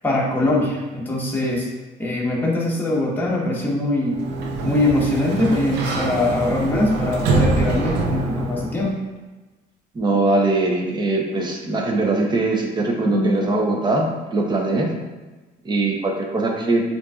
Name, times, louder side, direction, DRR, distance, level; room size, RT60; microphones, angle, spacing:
voice 1, 0.0-1.7 2.0-4.2 4.6-9.0 13.0-13.7, left 1 dB, 10° left, -4 dB, 1.2 m, -22 dB
Sliding door, 4.0-8.9, right 3 dB, 80° right, 0.6 m, -24 dB
voice 2, 9.9-14.1 14.3-14.9 15.6-16.8, right 2 dB, 25° right, 0 dB, 0.8 m, -21 dB
7.3 x 2.7 x 2.4 m, 1.2 s
cardioid pair, 110°, 17 cm